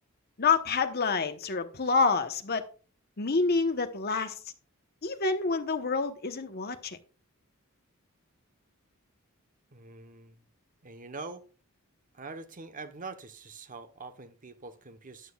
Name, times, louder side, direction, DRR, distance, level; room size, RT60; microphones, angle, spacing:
voice 1, 0.4-2.6 3.2-4.4 5.0-7.0, left 4 dB, 45° left, 1.0 m, -27 dB
voice 2, 9.7-10.4 10.8-11.4 12.1-15.3, right 3 dB, 40° right, 1.0 m, -44 dB
13.0 x 9.2 x 2.3 m
head